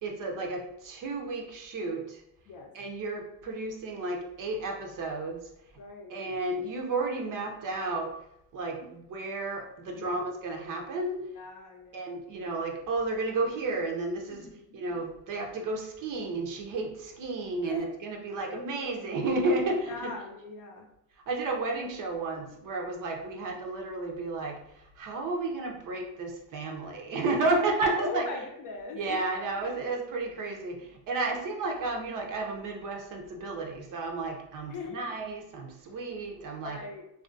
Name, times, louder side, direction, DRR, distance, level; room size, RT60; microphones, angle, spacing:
voice 1, 0.0-2.2 2.7-5.5 6.1-8.1 8.5-11.3 11.9-14.5 14.7-20.1 21.3-28.2 28.9-36.8, right 2 dB, 50° right, 2 dB, 0.6 m, -32 dB
voice 2, 5.8-6.2 8.8-8.9 10.0-10.2 11.3-12.2 14.3-14.8 17.6-17.9 18.3-18.7 19.9-20.9 27.4-27.6 28.0-29.0 29.7-29.9 31.3-31.4 34.7-35.0 36.6-37.0, left 3 dB, 45° left, 2 dB, 0.6 m, -40 dB
2.3 x 2.3 x 2.5 m, 0.80 s
supercardioid pair, 90°, 43 cm